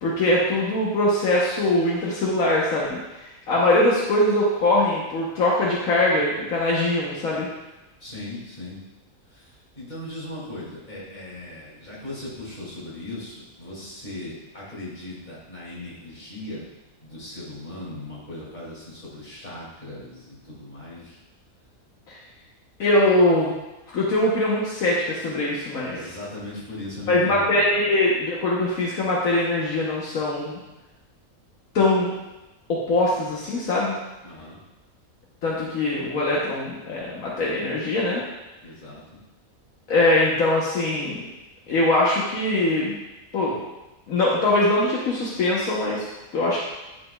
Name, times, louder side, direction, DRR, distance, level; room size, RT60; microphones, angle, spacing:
voice 1, 0.0-7.5 22.1-22.2 22.8-23.5 23.9-26.0 27.1-30.6 31.7-32.1 32.7-33.9 35.4-38.2 39.9-41.3 41.7-42.9 43.3-43.6 44.1-46.0 46.3-46.6, left 1 dB, 75° left, -5 dB, 1.4 m, -22 dB
voice 2, 8.0-8.8 9.3-16.7 17.0-21.2 25.7-27.7 34.2-34.6 38.6-39.0, left 2 dB, 30° left, -7 dB, 2.6 m, -38 dB
10.5 x 5.0 x 2.3 m, 1.0 s
omnidirectional pair, 1.5 m